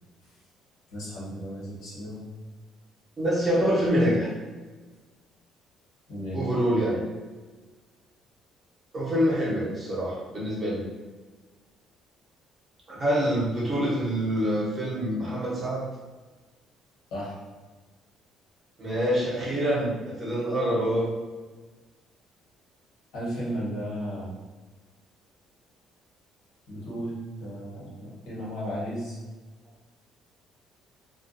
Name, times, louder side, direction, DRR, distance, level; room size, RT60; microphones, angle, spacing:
voice 1, 0.9-2.2 6.1-6.4 17.1-17.3 23.1-24.3 26.7-29.2, equal, 75° left, -7 dB, 1.3 m, -34 dB
voice 2, 3.2-4.3 6.3-7.1 8.9-10.9 12.9-15.8 18.8-21.1, equal, 25° right, -6 dB, 0.8 m, -26 dB
2.4 x 2.3 x 2.6 m, 1.3 s
cardioid pair, 135°, 0 cm